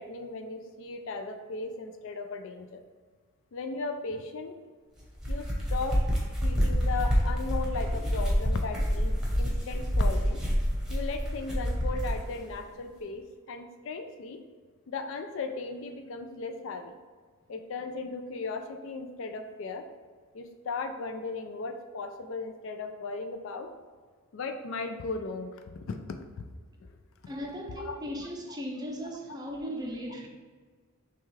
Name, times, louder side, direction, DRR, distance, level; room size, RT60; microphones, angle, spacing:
voice 1, 0.0-2.8 3.5-4.6 5.3-6.0 6.4-10.4 10.9-14.4 14.9-16.9 17.5-19.9 20.3-23.7 24.3-26.0 26.4-26.5 26.8-26.9 27.2-27.3 27.8-28.0 28.5-28.6, left 3 dB, 60° left, 0.4 m, -37 dB
sound 1, 5.0-12.2, equal, 5° right, 0.9 m, -27 dB
voice 2, 27.3-30.3, equal, 20° right, 0.5 m, -37 dB
5.9 x 2.4 x 3.2 m
head